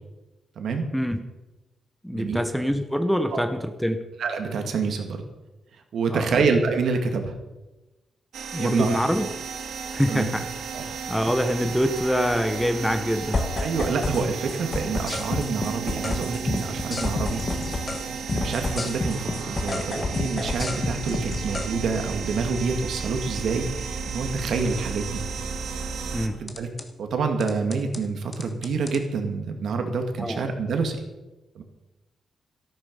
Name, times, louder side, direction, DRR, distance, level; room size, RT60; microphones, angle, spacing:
voice 1, 0.6-0.9 2.1-2.4 3.3-3.4 4.2-5.2 5.9-7.3 8.6-9.0 10.1-10.3 10.7-10.8 13.6-17.4 18.3-25.2 26.4-26.7 27.0-31.0 31.6-31.7, right 4 dB, 65° right, 5 dB, 2.1 m, -27 dB
voice 2, 2.0-4.0 6.1-6.4 8.5-9.3 9.9-10.5 11.1-13.4 26.1-26.4 30.2-30.5, equal, ahead, 8 dB, 0.8 m, -25 dB
sound 1, 8.3-26.3, right 5 dB, 85° right, 1.6 m, -34 dB
sound 2, 13.3-14.2 14.5-18.0 18.3-21.7 26.5-26.8 27.4-28.0 28.3-29.0, left 3 dB, 25° left, 1.4 m, -29 dB
13.5 x 12.5 x 5.4 m, 1.1 s
wide cardioid pair, 155°, 0 cm